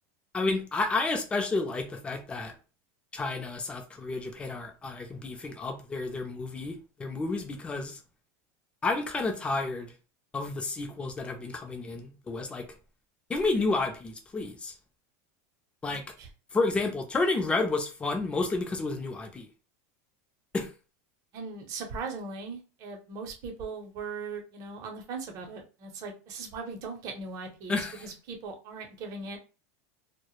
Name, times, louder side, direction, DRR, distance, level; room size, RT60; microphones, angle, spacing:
voice 1, 0.3-2.5 3.1-6.7 7.0-8.0 8.8-9.9 10.3-12.7 13.3-14.7 15.8-16.0 16.5-19.5 20.5-20.7 27.7-28.0, left 3 dB, 15° left, 0.4 m, -30 dB
voice 2, 15.9-16.3 21.3-29.4, right 4 dB, 40° right, 0.7 m, -39 dB
2.1 x 2.0 x 3.0 m
supercardioid pair, 140°, 9 cm